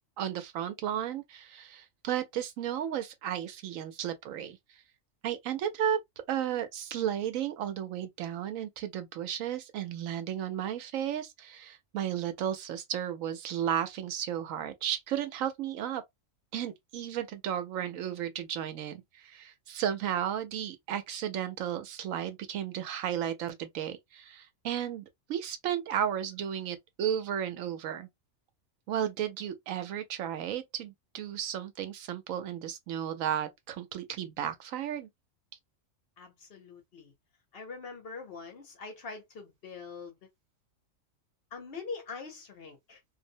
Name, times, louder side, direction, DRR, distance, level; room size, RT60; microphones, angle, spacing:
voice 1, 0.2-4.6 5.2-6.0 6.3-16.0 16.5-28.1 28.9-35.1, right 10 dB, 85° right, 1.0 m, -34 dB
voice 2, 36.2-37.1 37.5-40.2 41.5-43.0, left 4 dB, 55° left, 0.9 m, -43 dB
2.6 x 2.0 x 2.6 m
omnidirectional pair, 1.4 m